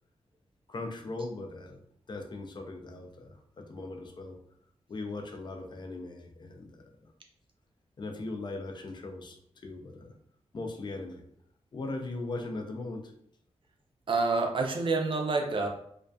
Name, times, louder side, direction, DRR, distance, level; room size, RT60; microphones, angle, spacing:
voice 1, 0.7-1.8 2.1-4.4 4.9-7.1 8.0-9.4 9.6-10.1 10.5-11.2 11.7-13.1, left 2 dB, 40° left, 3 dB, 0.4 m, -39 dB
voice 2, 14.1-15.7, right 3 dB, 50° right, 2 dB, 0.5 m, -27 dB
2.2 x 2.2 x 2.5 m, 0.68 s
cardioid pair, 80°, 11 cm